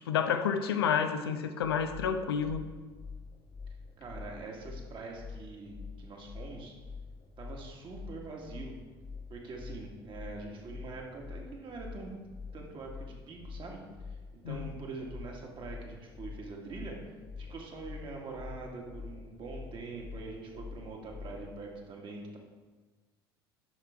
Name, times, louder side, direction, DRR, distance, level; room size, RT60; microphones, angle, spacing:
voice 1, 0.1-2.6 14.4-14.7, left 7 dB, 75° left, 8 dB, 0.6 m, -29 dB
sound 1, 1.6-21.5, left 4 dB, 40° left, 1.2 m, -46 dB
voice 2, 4.0-6.7 7.4-8.8 9.3-12.1 12.5-13.8 14.1-14.2 14.5-17.0 17.4-22.4, right 3 dB, 40° right, 0 dB, 1.8 m, -44 dB
9.7 x 5.9 x 3.5 m, 1.3 s
figure-of-eight pair, 65°, 13 cm